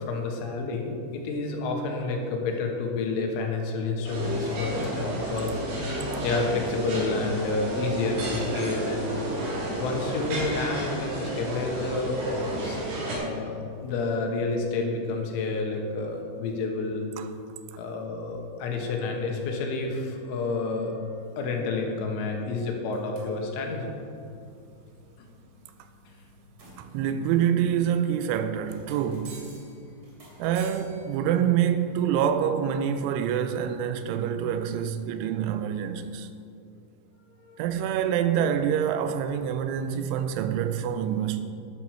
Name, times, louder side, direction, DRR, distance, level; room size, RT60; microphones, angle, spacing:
voice 1, 0.1-5.6 5.9-9.1 9.8-17.0 17.8-21.0 21.4-24.0 37.4-37.6, left 3 dB, 90° left, 3.9 m, -29 dB
sound 1, 4.0-13.1, right 1 dB, 55° right, 4.8 m, -31 dB
sound 2, 21.6-33.6, right 1 dB, 40° right, 2.7 m, -53 dB
voice 2, 26.8-29.4 30.4-36.3 37.6-41.4, right 9 dB, 90° right, 3.1 m, -26 dB
12.0 x 11.0 x 4.5 m
omnidirectional pair, 5.5 m